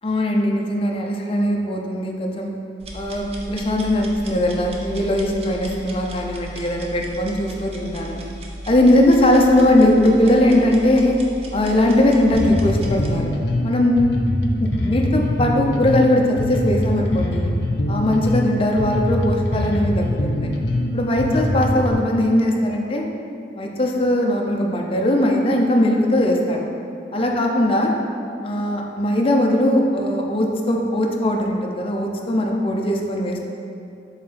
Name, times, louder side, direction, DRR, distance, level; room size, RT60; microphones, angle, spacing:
voice 1, 0.0-2.5 2.9-8.2 8.7-11.1 11.5-13.3 13.6-14.2 14.6-17.5 17.9-20.5 20.9-23.0 23.6-26.7 27.1-27.9 28.4-33.4, left 1 dB, 30° left, 0 dB, 0.6 m, -19 dB
sound 1, 2.8-13.2, right 1 dB, 35° right, 0.6 m, -35 dB
Bass guitar, 12.3-21.9, left 1 dB, 70° left, 0.6 m, -23 dB
7.1 x 3.8 x 4.1 m, 2.6 s
head